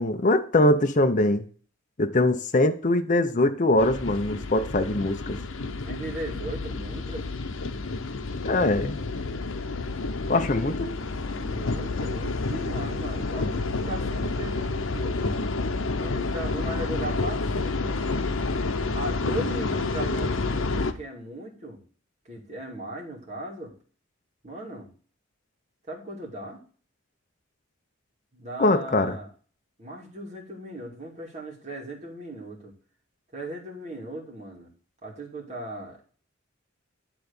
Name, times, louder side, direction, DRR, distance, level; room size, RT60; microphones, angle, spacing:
voice 1, 0.0-1.4 2.0-5.4 8.4-9.0 10.3-10.9 28.6-29.1, left 1 dB, 40° left, 0.7 m, -22 dB
sound 1, 3.8-20.9, left 3 dB, 80° left, 0.8 m, -29 dB
voice 2, 5.8-7.3 11.4-15.4 16.0-18.0 18.9-21.8 22.2-23.7 24.4-24.9 25.9-26.6 28.3-29.3 29.8-32.7 33.3-34.7 35.0-36.0, right 1 dB, 35° right, 2.4 m, -37 dB
10.0 x 3.9 x 6.9 m
head